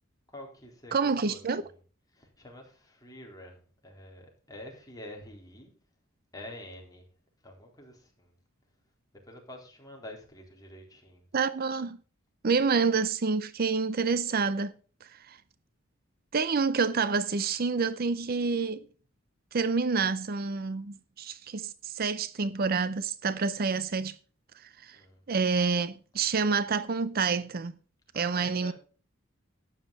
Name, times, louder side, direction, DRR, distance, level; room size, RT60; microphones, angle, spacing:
voice 1, 0.3-1.8 2.1-5.7 6.3-7.0 7.4-8.3 9.2-11.2 24.9-25.2 28.1-28.7, left 1 dB, 20° left, 3.9 m, -47 dB
voice 2, 0.9-1.6 11.3-12.0 12.4-14.7 15.3-15.4 16.3-18.8 19.5-24.1 24.8-25.0 25.3-27.7 28.1-28.7, right 4 dB, 50° right, 0.6 m, -28 dB
12.5 x 9.3 x 4.1 m
head